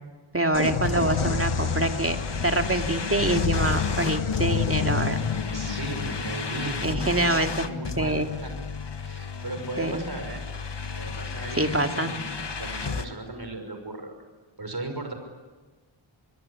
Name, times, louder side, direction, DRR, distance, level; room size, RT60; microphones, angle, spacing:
voice 1, 0.3-2.2 2.4-5.2 6.8-7.7 8.0-8.3 9.8-10.1 11.5-12.1, right 1 dB, 25° right, 5 dB, 2.5 m, -25 dB
sound 1, 0.5-8.1, left 5 dB, 75° left, 1.6 m, -29 dB
sound 2, 0.8-13.1, left 5 dB, 55° left, 1.6 m, -34 dB
voice 2, 5.5-8.5 9.0-10.4 11.0-14.1 14.6-15.1, right 2 dB, 45° right, 6 dB, 6.0 m, -36 dB
26.0 x 22.0 x 10.0 m, 1.3 s
wide cardioid pair, 65°, 50 cm